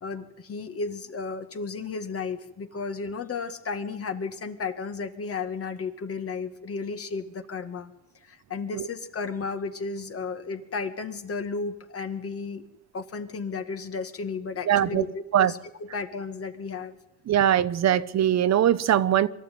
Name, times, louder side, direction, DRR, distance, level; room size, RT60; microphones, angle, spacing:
voice 1, 0.0-7.9 8.2-12.6 12.9-15.6 15.9-17.0, left 4 dB, 50° left, 2.1 m, -33 dB
voice 2, 14.7-15.0 15.3-15.5 17.3-19.3, right 10 dB, 60° right, 0.9 m, -21 dB
23.5 x 13.0 x 9.4 m
cardioid pair, 90°, 30 cm